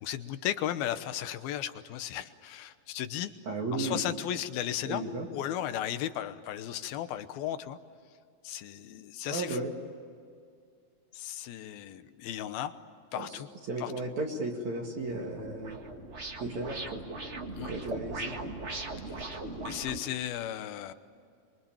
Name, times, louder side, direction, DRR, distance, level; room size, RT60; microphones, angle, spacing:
voice 1, 0.0-3.3 3.7-7.8 8.4-9.6 11.1-12.7 13.1-13.5 13.8-13.9 17.6-17.7 19.1-19.2 19.6-20.9, left 11 dB, 80° left, 10 dB, 2.9 m, -35 dB
voice 2, 3.4-4.0 4.9-5.3 9.3-9.7 13.1-13.4 13.7-15.8 16.4-17.0 17.7-18.4, right 2 dB, 55° right, 0 dB, 3.2 m, -34 dB
sound 1, 15.1-20.0, right 2 dB, 35° right, 1.1 m, -39 dB
27.0 x 23.5 x 8.8 m, 2.3 s
omnidirectional pair, 4.3 m